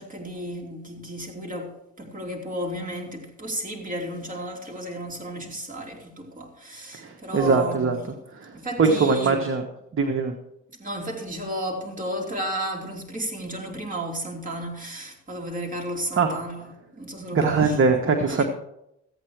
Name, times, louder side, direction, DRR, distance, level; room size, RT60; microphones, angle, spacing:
voice 1, 0.0-7.9 8.5-9.4 10.8-17.8 18.3-18.5, right 1 dB, 25° right, 3.0 m, -33 dB
voice 2, 6.9-8.0 8.4-9.6 9.9-10.3 16.2-16.4 17.3-18.5, right 4 dB, 45° right, 1.2 m, -22 dB
14.0 x 8.8 x 4.7 m
cardioid pair, 90°, 30 cm